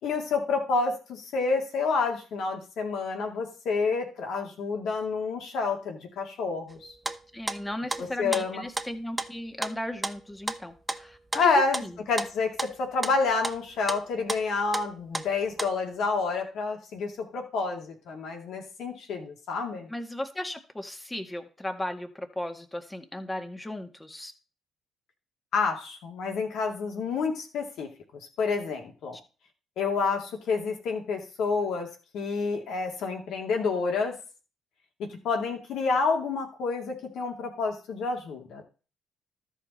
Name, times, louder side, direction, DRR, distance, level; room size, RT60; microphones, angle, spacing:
voice 1, 0.0-7.0 8.2-8.6 11.3-19.9 25.5-29.2 29.8-34.2 35.0-38.6, left 4 dB, 70° left, 2 dB, 2.3 m, -29 dB
sound 1, 6.7-15.7, right 2 dB, 15° right, 1.0 m, -33 dB
voice 2, 7.3-12.0 19.9-24.3, left 1 dB, 15° left, 6 dB, 1.8 m, -36 dB
13.5 x 5.1 x 4.2 m, 0.35 s
hypercardioid pair, 55°, 0 cm